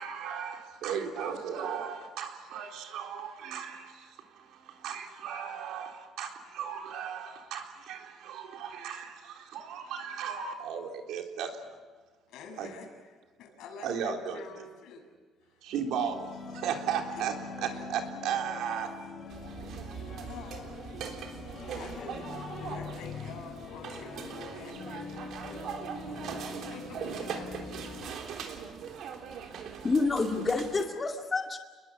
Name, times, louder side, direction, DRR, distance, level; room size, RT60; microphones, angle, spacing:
voice 1, 0.0-11.5 12.6-12.7 13.8-14.4 15.6-16.3 16.5-17.3 17.6-18.9, right 7 dB, 85° right, 3.7 m, -36 dB
voice 2, 12.3-15.1 15.4-15.6 17.5-17.9 20.3-20.7 21.7-22.3 22.6-26.3 26.7-28.0, left 4 dB, 85° left, 7.0 m, -48 dB
sound 1, 15.7-28.1, left 5 dB, 45° left, 3.2 m, -43 dB
sound 2, 19.3-30.8, right 7 dB, 65° right, 3.5 m, -41 dB
voice 3, 29.8-31.6, left 3 dB, 25° left, 2.3 m, -28 dB
30.0 x 21.5 x 7.3 m
cardioid pair, 150°, 0 cm